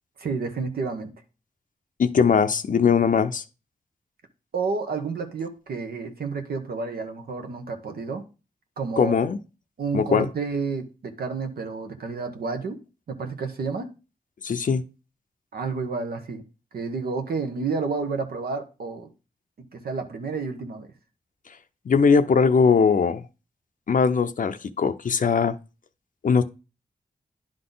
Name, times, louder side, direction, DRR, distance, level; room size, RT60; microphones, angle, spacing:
voice 1, 0.2-1.1 4.5-8.2 8.8-9.3 9.8-12.8 13.1-13.9 15.5-16.4 16.7-19.1 19.7-20.9, right 4 dB, 85° right, 1.0 m, -30 dB
voice 2, 2.0-3.4 9.0-9.4 9.9-10.3 14.4-14.8 21.9-23.2 23.9-25.6 26.2-26.4, left 5 dB, 60° left, 0.5 m, -20 dB
10.5 x 3.9 x 3.9 m
cardioid pair, 60°, 15 cm